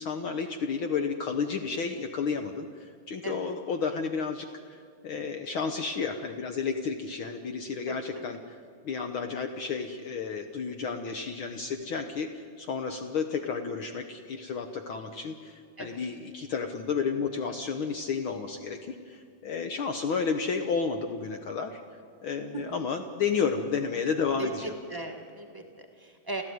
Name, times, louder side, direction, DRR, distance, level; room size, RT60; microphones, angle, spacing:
voice 1, 0.0-21.8 22.2-24.7, left 5 dB, 85° left, 7 dB, 1.1 m, -32 dB
voice 2, 7.9-8.2 15.8-16.0 22.5-22.8 24.4-26.4, right 2 dB, 30° right, 1 dB, 0.4 m, -38 dB
29.5 x 15.0 x 9.4 m, 2.2 s
omnidirectional pair, 3.9 m